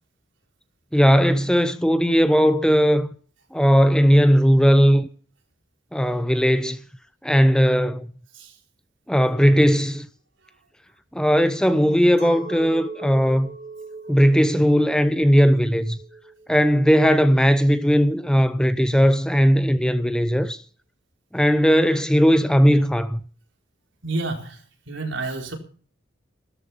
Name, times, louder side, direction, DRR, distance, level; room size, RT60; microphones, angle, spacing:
voice 1, 0.9-3.1 3.5-5.1 5.9-6.8 7.2-8.1 9.1-10.1 11.1-13.5 14.1-16.0 16.5-20.6 21.3-23.2, equal, 5° left, 0.7 m, -18 dB
Chink clink, 12.2-17.6, right 3 dB, 50° right, 4.8 m, -40 dB
voice 2, 24.0-25.5, right 2 dB, 70° right, 4.2 m, -30 dB
16.0 x 13.5 x 5.7 m
head